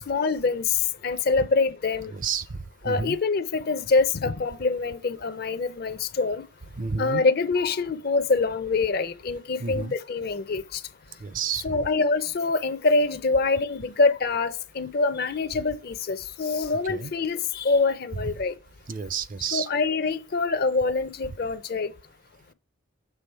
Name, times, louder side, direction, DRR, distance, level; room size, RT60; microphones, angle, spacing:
voice 1, 0.1-0.8 1.0-2.1 2.8-6.4 7.0-10.8 11.6-18.5 19.4-21.9, left 3 dB, 45° left, 0.5 m, -25 dB
voice 2, 2.1-3.2 6.8-7.2 9.6-9.9 11.2-11.8 16.9-17.1 18.2-18.3 18.9-19.7, right 5 dB, 40° right, 0.4 m, -30 dB
6.9 x 3.6 x 4.4 m
head